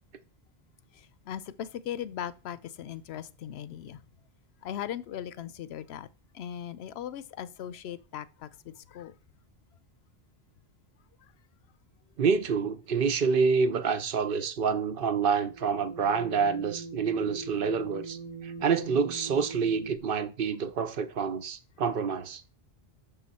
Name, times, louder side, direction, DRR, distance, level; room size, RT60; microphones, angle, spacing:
voice 1, 0.9-4.0 4.6-6.1 6.3-9.2, left 10 dB, 80° left, 0.8 m, -39 dB
voice 2, 12.2-18.2 18.4-22.4, right 5 dB, 60° right, 0.9 m, -27 dB
sound 1, 15.4-20.0, right 4 dB, 35° right, 0.9 m, -41 dB
7.0 x 5.8 x 4.1 m
omnidirectional pair, 1.1 m